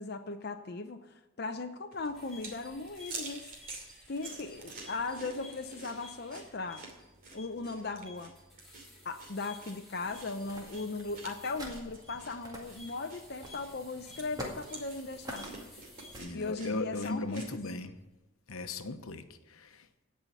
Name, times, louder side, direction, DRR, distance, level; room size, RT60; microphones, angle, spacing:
voice 1, 0.0-3.5 4.1-6.8 7.3-8.3 9.0-15.5 16.3-17.8, left 3 dB, 45° left, 5 dB, 0.6 m, -38 dB
sound 1, 1.9-17.5, right 3 dB, 40° right, 2.7 m, -49 dB
sound 2, 2.1-17.1 17.5-17.9, left 2 dB, ahead, 4.2 m, -55 dB
sound 3, 10.0-16.2, equal, 15° right, 2.0 m, -47 dB
voice 2, 16.2-17.9 18.5-20.1, left 3 dB, 80° left, 8 dB, 1.0 m, -38 dB
16.5 x 5.6 x 8.2 m, 1.1 s
head